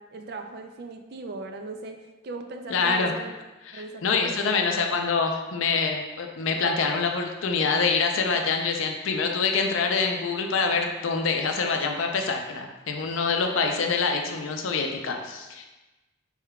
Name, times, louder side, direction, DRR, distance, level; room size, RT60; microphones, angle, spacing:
voice 1, 0.0-3.3 3.7-4.6, right 3 dB, 50° right, 5 dB, 0.3 m, -39 dB
voice 2, 2.7-3.1 3.7-15.7, left 4 dB, 75° left, 3 dB, 0.5 m, -25 dB
4.4 x 3.6 x 2.2 m, 1.1 s
head